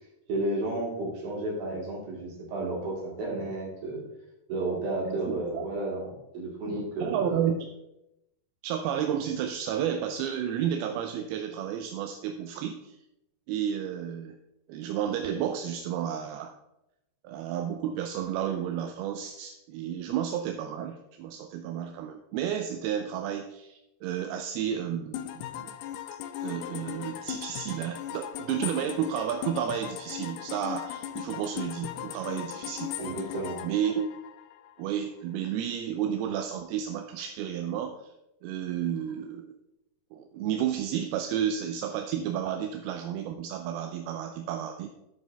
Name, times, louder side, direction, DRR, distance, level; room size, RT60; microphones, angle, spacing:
voice 1, 0.3-4.0 4.5-7.5 33.0-33.6, right 2 dB, 65° right, -2 dB, 4.3 m, -32 dB
voice 2, 5.1-5.7 7.0-7.6 8.6-13.0 13.5-14.4 14.7-16.5 17.2-25.8 26.4-32.9 33.6-34.1 34.8-38.1 38.4-39.6 40.1-44.9, right 9 dB, 80° right, 6 dB, 2.5 m, -32 dB
sound 1, 25.1-34.8, left 11 dB, 85° left, 2.5 m, -38 dB
10.5 x 8.8 x 3.4 m, 0.87 s
omnidirectional pair, 4.6 m